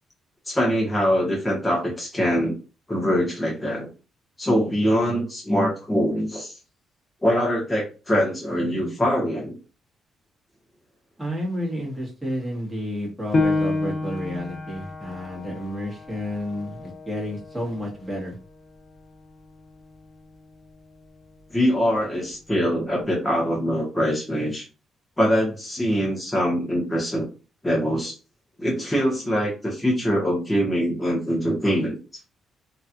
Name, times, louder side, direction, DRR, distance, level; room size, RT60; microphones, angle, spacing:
voice 1, 0.5-2.5 2.9-3.9 4.4-6.5 7.2-9.5 21.5-24.7 25.2-27.3 27.6-28.1 28.6-32.0, equal, 15° left, -3 dB, 1.4 m, -23 dB
voice 2, 11.2-18.4, equal, 5° right, -4 dB, 1.7 m, -31 dB
Piano, 13.3-18.5 19.0-19.1 19.7-20.2, left 3 dB, 40° left, 0.8 m, -29 dB
3.0 x 2.9 x 2.5 m, 0.32 s
cardioid pair, 90°, 0 cm